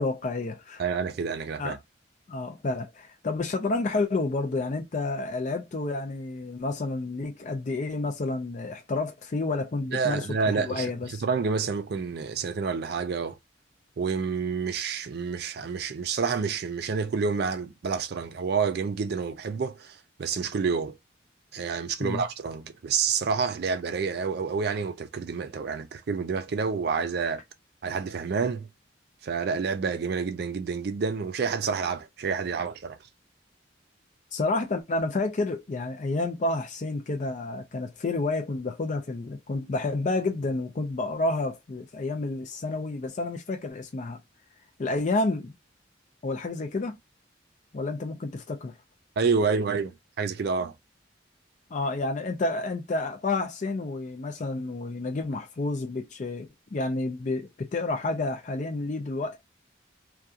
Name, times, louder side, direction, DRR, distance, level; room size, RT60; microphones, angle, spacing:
voice 1, 0.0-0.8 1.6-1.8 2.3-11.2 22.0-22.2 34.3-44.2 44.8-45.5 46.2-47.0 47.7-48.8 51.7-59.4, left 2 dB, 40° left, 0.4 m, -30 dB
voice 2, 0.8-1.8 9.9-13.4 14.0-20.9 21.5-27.4 27.8-28.7 29.2-33.0 49.2-50.7, right 5 dB, 55° right, 0.4 m, -28 dB
2.7 x 2.3 x 2.3 m
head